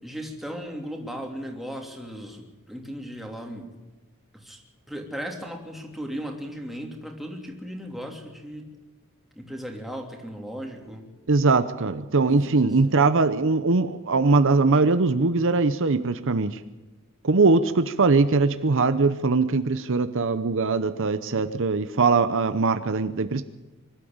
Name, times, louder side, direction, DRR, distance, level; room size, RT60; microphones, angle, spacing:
voice 1, 0.0-3.7 4.3-4.6 4.9-8.7 9.3-11.1 12.2-13.0, equal, ahead, 1 dB, 3.0 m, -36 dB
voice 2, 11.3-16.6 17.2-23.4, right 3 dB, 65° right, 11 dB, 0.8 m, -21 dB
24.5 x 12.5 x 8.9 m, 1.1 s
head